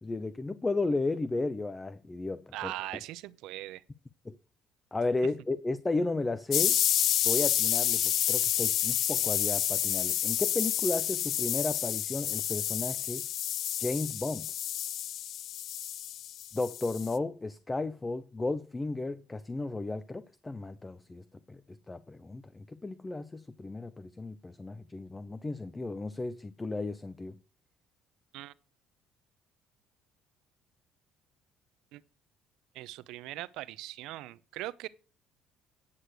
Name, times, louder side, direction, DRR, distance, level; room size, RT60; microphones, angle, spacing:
voice 1, 0.0-2.7 4.3-4.4 4.9-6.8 7.2-13.2 13.8-14.5 16.5-27.3, left 2 dB, 20° left, 0.6 m, -34 dB
voice 2, 2.5-3.8 28.3-28.5 31.9-32.0 32.7-34.9, right 16 dB, 80° right, 0.7 m, -40 dB
sound 1, 6.5-17.1, left 11 dB, 65° left, 0.5 m, -29 dB
9.9 x 6.5 x 6.1 m
cardioid pair, 90°, 0 cm